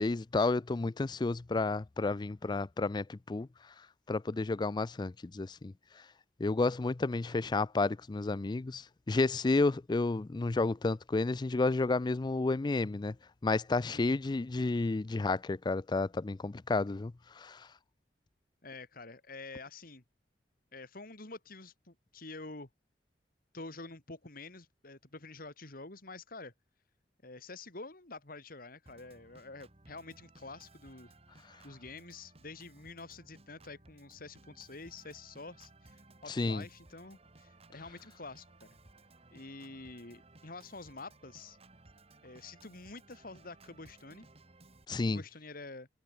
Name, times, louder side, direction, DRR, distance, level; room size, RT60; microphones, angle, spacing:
voice 1, 0.0-3.5 4.1-5.7 6.4-13.2 13.4-17.7 36.3-36.6 44.9-45.2, left 3 dB, 25° left, 0.4 m, -31 dB
voice 2, 18.6-20.0 20.7-22.7 23.5-26.5 27.2-31.1 31.6-38.5 39.3-41.6 42.2-44.3 45.1-45.9, left 3 dB, 55° left, 2.8 m, -48 dB
Organ, 28.9-44.9, right 2 dB, 35° right, 2.5 m, -59 dB
head